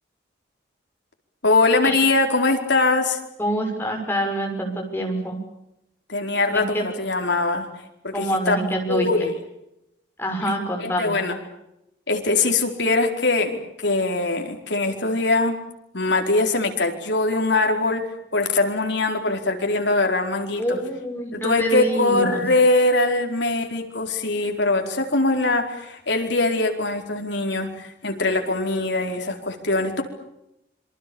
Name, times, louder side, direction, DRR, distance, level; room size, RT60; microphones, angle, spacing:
voice 1, 1.4-3.2 6.1-7.7 8.0-8.6 8.9-9.3 10.8-11.4 12.1-15.5 15.9-18.0 18.3-20.8 21.3-30.0, left 2 dB, 70° left, 4 dB, 4.7 m, -22 dB
voice 2, 3.4-5.4 6.5-6.9 8.1-9.1 10.2-11.1 20.6-22.4, right 1 dB, 10° left, 2 dB, 6.4 m, -26 dB
27.0 x 25.0 x 7.2 m, 0.84 s
head